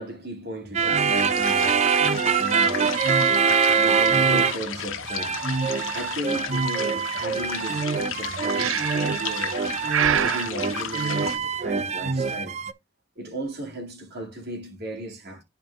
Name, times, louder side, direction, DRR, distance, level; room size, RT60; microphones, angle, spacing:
voice 1, 0.0-1.9 2.4-2.9 3.7-5.4 5.9-12.6 13.2-15.4, right 1 dB, 55° right, 2.3 m, -35 dB
sound 1, 0.7-4.8 5.0-12.7, right 5 dB, 35° right, 0.5 m, -24 dB
sound 2, 1.1-11.4, left 7 dB, 85° left, 1.2 m, -34 dB
Breathing, 8.6-9.2 9.9-10.5, right 9 dB, 90° right, 0.5 m, -24 dB
11.5 x 4.6 x 2.4 m
head